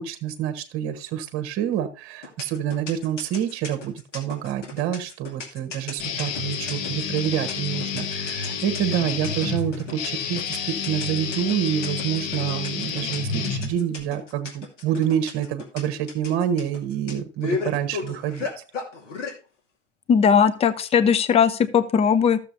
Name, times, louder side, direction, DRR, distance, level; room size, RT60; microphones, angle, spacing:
voice 1, 0.0-18.5, right 10 dB, 35° right, 8 dB, 1.2 m, -27 dB
sound 1, 2.2-19.3, left 4 dB, 75° left, 2.5 m, -34 dB
Guitar, 6.0-14.0, left 6 dB, 45° left, 1.5 m, -30 dB
voice 2, 20.1-22.4, left 7 dB, 15° left, 14 dB, 0.6 m, -18 dB
14.5 x 6.8 x 2.7 m, 0.33 s
figure-of-eight pair, 90°, 37 cm